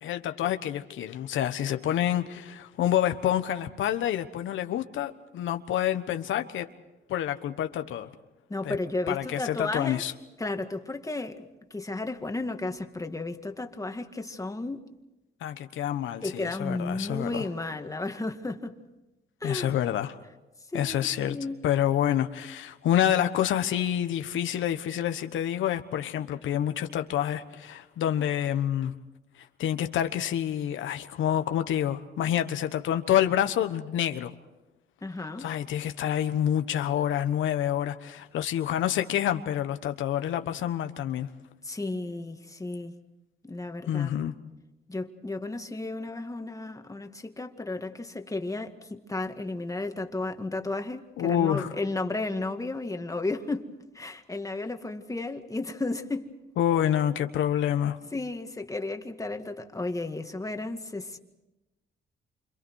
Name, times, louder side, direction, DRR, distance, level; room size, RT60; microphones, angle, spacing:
voice 1, 0.0-6.7 7.1-8.1 8.6-8.7 9.1-10.1 15.4-17.5 19.4-20.2 20.7-21.4 21.6-28.9 29.6-34.3 35.4-41.3 43.9-44.3 51.2-51.7 56.6-58.0, left 10 dB, 80° left, 1.2 m, -27 dB
voice 2, 8.5-10.0 10.4-11.5 11.7-14.9 16.2-18.8 19.4-19.8 20.7-21.6 35.0-35.5 41.6-42.9 43.4-44.1 44.9-56.3 58.1-61.2, left 2 dB, 15° left, 1.9 m, -33 dB
28.5 x 27.0 x 4.7 m
cardioid pair, 90°, 20 cm